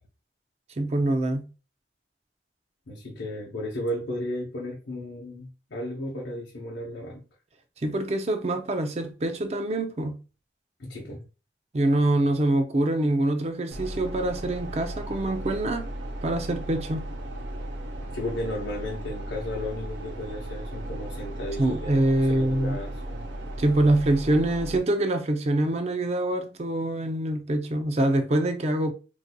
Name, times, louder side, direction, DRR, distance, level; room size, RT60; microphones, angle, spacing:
voice 1, 0.8-1.4 7.8-10.2 11.7-15.9 16.2-17.1 21.6-22.8 23.6-28.9, right 1 dB, 35° right, 0.4 m, -25 dB
voice 2, 2.9-7.2 10.8-11.2 18.1-22.0 22.3-23.2, left 1 dB, 75° left, 0.7 m, -34 dB
sound 1, 13.7-24.8, right 1 dB, 80° right, 0.7 m, -36 dB
4.1 x 2.6 x 2.2 m
head